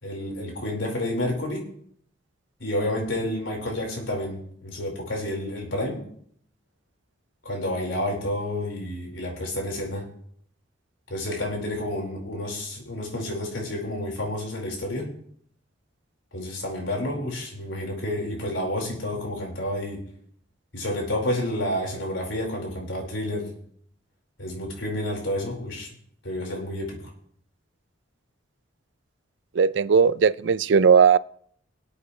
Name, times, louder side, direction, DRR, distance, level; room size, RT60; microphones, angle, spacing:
voice 1, 0.0-1.6 2.6-6.0 7.4-10.1 11.1-15.1 16.3-20.0 20.7-23.5 24.4-25.9 26.2-27.0, left 1 dB, 90° left, 4.6 m, -30 dB
voice 2, 29.6-31.2, right 6 dB, 70° right, 0.4 m, -18 dB
24.5 x 8.6 x 3.2 m
head